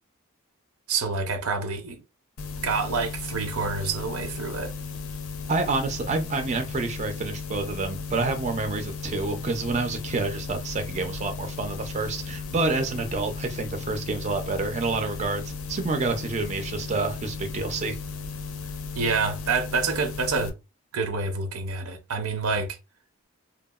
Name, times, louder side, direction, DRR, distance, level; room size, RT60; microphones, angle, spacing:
voice 1, 0.9-2.0 2.6-4.7 19.0-20.5 20.9-22.8, right 4 dB, 85° right, 0.6 m, -27 dB
sound 1, 2.4-20.5, left 4 dB, 70° left, 0.4 m, -35 dB
voice 2, 5.5-18.0, right 3 dB, 30° right, 0.3 m, -28 dB
2.7 x 2.3 x 2.3 m
head